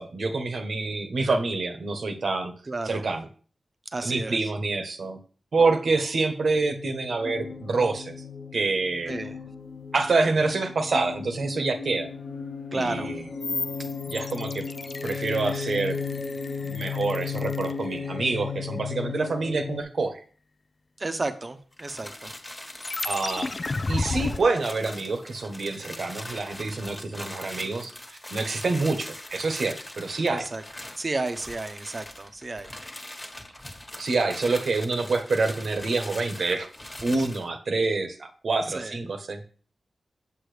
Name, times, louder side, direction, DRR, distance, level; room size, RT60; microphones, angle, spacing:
voice 1, 0.0-2.5 2.9-3.2 4.0-5.2 5.5-8.1 8.5-9.1 9.9-12.1 12.7-13.2 14.1-14.7 15.0-16.0 16.6-20.2 23.0-23.5 23.9-30.5 34.0-36.7 37.0-39.4, right 3 dB, 65° right, 6 dB, 1.2 m, -27 dB
voice 2, 2.7-3.0 3.8-4.5 9.1-9.4 12.7-13.1 21.0-22.3 30.2-30.6 31.0-32.7 38.7-39.0, right 2 dB, 35° right, 9 dB, 0.9 m, -32 dB
sound 1, 6.6-19.8, left 6 dB, 90° left, 1.5 m, -35 dB
sound 2, 13.4-18.4 22.8-24.4, left 3 dB, 40° left, 0.5 m, -33 dB
sound 3, 21.7-37.5, left 1 dB, 20° left, 1.5 m, -42 dB
8.1 x 7.4 x 3.3 m, 0.41 s
wide cardioid pair, 95°, 0 cm